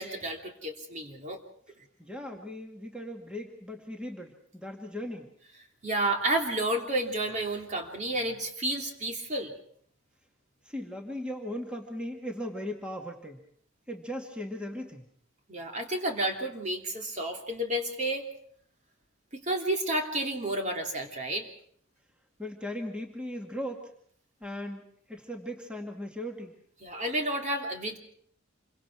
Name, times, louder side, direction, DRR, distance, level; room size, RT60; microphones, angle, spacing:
voice 1, 0.0-1.4 5.8-9.5 15.5-18.3 19.3-21.5 26.8-28.0, right 1 dB, 40° right, 2 dB, 3.0 m, -31 dB
voice 2, 2.0-5.3 10.6-13.4 13.9-15.0 22.4-23.9 24.4-24.8 25.1-26.5, left 1 dB, 5° right, 1 dB, 2.2 m, -38 dB
27.5 x 24.0 x 4.8 m, 0.62 s
head